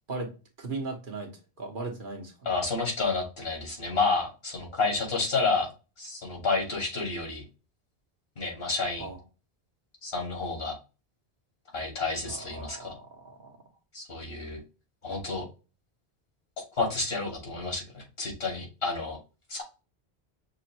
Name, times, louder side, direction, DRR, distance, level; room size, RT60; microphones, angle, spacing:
voice 1, 0.6-1.3 1.6-2.5 9.0-9.2 12.3-13.6, right 3 dB, 55° right, 2 dB, 1.1 m, -37 dB
voice 2, 2.5-5.7 6.0-7.4 8.4-9.1 10.0-10.8 11.7-12.9 13.9-14.6 15.0-15.4 16.7-19.2 19.5-19.6, left 3 dB, 65° left, 1 dB, 1.9 m, -30 dB
6.0 x 2.5 x 2.9 m, 0.31 s
omnidirectional pair, 1.1 m